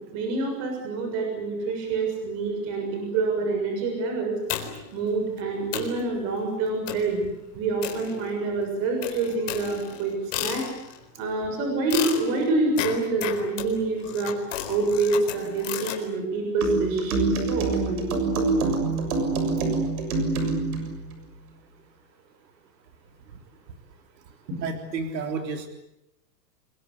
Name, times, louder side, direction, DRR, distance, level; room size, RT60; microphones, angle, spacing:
voice 1, 0.1-4.3 4.9-7.2 7.5-10.1 10.4-10.6 11.2-14.3 14.7-18.0, right 3 dB, 30° right, 3 dB, 6.8 m, -26 dB
sound 1, 4.5-5.0 5.4-5.5 5.7-6.0 6.9-7.2 7.8-8.5 9.0-11.0 11.9-16.0, left 10 dB, 50° left, 4.3 m, -33 dB
sound 2, 16.6-20.9, right 3 dB, 60° right, 6.9 m, -25 dB
voice 2, 24.6-25.7, right 4 dB, 90° right, 6 dB, 3.7 m, -30 dB
27.0 x 22.5 x 8.4 m, 0.85 s
supercardioid pair, 170°, 49 cm